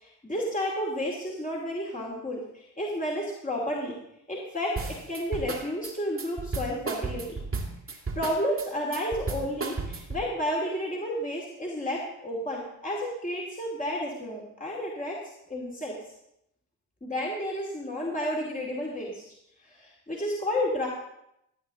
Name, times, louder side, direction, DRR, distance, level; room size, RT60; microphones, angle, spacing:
voice 1, 0.0-4.0 4.3-7.4 7.9-15.2 15.5-15.9 17.0-19.2 19.6-20.9, equal, 15° left, -3 dB, 2.6 m, -31 dB
sound 1, 4.8-10.3, right 4 dB, 25° right, 2.0 m, -33 dB
14.5 x 8.4 x 3.8 m, 0.80 s
hypercardioid pair, 50°, 49 cm